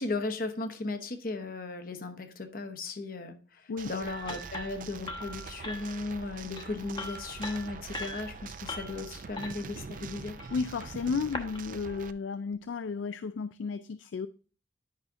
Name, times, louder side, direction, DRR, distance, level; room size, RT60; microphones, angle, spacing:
voice 1, 0.0-3.4 3.8-10.4, left 3 dB, 50° left, 0.9 m, -36 dB
sound 1, 3.8-12.1, right 5 dB, 45° right, 0.4 m, -44 dB
sound 2, 4.1-11.6, left 2 dB, 25° left, 0.9 m, -42 dB
voice 2, 10.5-14.3, left 5 dB, 85° left, 0.4 m, -33 dB
10.5 x 5.7 x 2.6 m
head